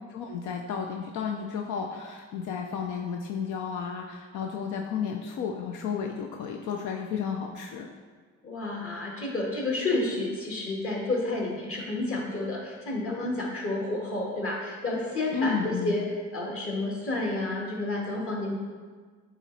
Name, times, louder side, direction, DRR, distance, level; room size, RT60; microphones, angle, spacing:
voice 1, 0.1-7.9 15.3-15.9, left 6 dB, 80° left, 2 dB, 0.6 m, -32 dB
voice 2, 8.4-16.1 16.3-18.5, left 2 dB, 45° left, -2 dB, 1.9 m, -30 dB
8.8 x 3.1 x 4.1 m, 1.5 s
cardioid pair, 90°, 30 cm